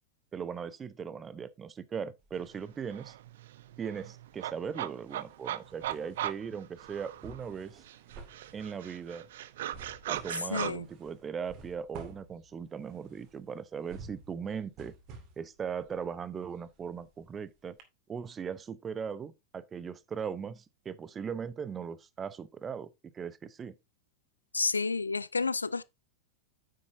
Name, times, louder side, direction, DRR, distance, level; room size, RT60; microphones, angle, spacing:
voice 1, 0.3-3.1 3.8-7.8 8.5-9.3 10.1-14.9 15.4-17.8 18.1-22.9 23.1-23.7, right 7 dB, 20° right, 0.8 m, -39 dB
sound 1, 2.2-3.3 3.6-17.4 17.8-17.9, right 4 dB, 40° right, 2.2 m, -52 dB
sound 2, 2.6-2.7 2.9-7.5 7.9-10.7, right 12 dB, 55° right, 0.6 m, -39 dB
voice 2, 10.5-10.9 24.5-25.8, left 4 dB, 80° left, 0.4 m, -30 dB
9.7 x 7.6 x 2.7 m
figure-of-eight pair, 90°, 0 cm